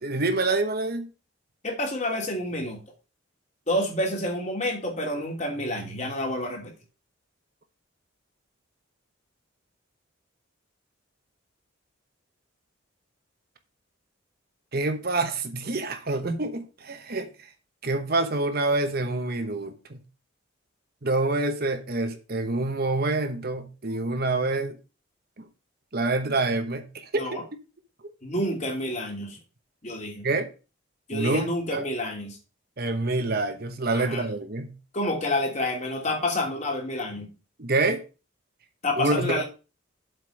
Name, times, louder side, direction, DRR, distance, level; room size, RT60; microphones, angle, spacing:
voice 1, 0.0-1.1 14.7-17.3 17.8-20.0 21.0-24.8 25.4-25.5 25.9-27.3 30.2-30.5 31.1-31.8 32.8-34.7 37.6-38.0 39.0-39.4, right 2 dB, 50° right, 1.1 m, -27 dB
voice 2, 1.6-2.8 3.7-6.7 16.2-16.3 27.1-27.4 28.2-29.4 29.8-30.3 31.1-32.4 33.9-34.2 34.9-37.3 38.8-39.4, left 1 dB, 35° left, 2.8 m, -29 dB
7.8 x 5.3 x 6.3 m
head